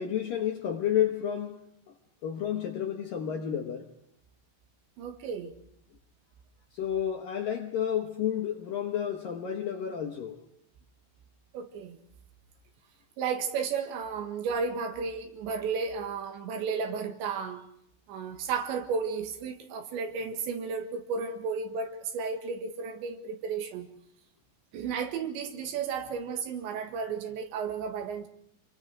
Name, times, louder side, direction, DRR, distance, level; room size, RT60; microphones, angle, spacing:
voice 1, 0.0-1.9 2.2-3.9 6.7-10.4, left 9 dB, 65° left, 2.3 m, -31 dB
voice 2, 5.0-5.5 11.5-12.0 13.2-17.6 18.1-23.9 24.7-28.3, right 5 dB, 70° right, 3.8 m, -33 dB
27.5 x 23.0 x 5.0 m
omnidirectional pair, 5.6 m